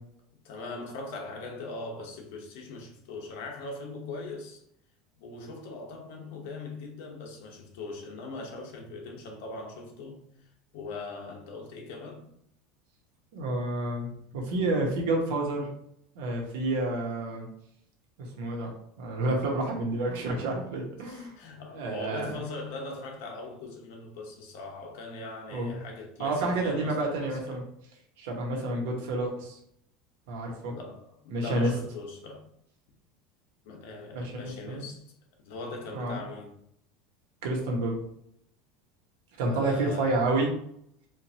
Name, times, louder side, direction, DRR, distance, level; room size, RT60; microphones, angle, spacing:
voice 1, 0.4-4.6 5.2-12.3 21.0-27.6 30.6-32.5 33.6-35.1 35.4-36.6 39.5-40.3, left 3 dB, 70° left, 0.9 m, -41 dB
voice 2, 13.3-15.7 16.1-17.5 18.2-18.7 19.0-21.4 21.7-22.3 25.5-25.7 26.2-27.6 28.2-29.6 30.3-30.7 31.3-31.7 34.1-34.8 35.9-36.2 37.4-38.0 39.4-40.5, right 2 dB, 70° right, 1.2 m, -29 dB
4.5 x 2.6 x 2.8 m
cardioid pair, 175°, 0 cm